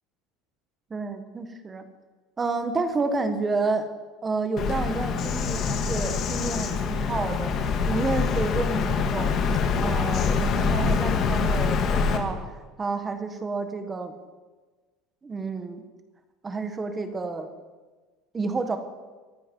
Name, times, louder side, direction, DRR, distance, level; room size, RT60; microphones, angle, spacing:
voice 1, 0.9-1.8 2.4-3.9 4.2-9.3 9.8-14.2 15.2-15.8 16.4-17.5 18.3-18.8, right 3 dB, 15° right, 8 dB, 1.4 m, -30 dB
Bird vocalization bird call bird song, 4.6-12.2, left 5 dB, 35° left, 1.7 m, -25 dB
23.0 x 9.9 x 5.4 m, 1.3 s
cardioid pair, 160°, 0 cm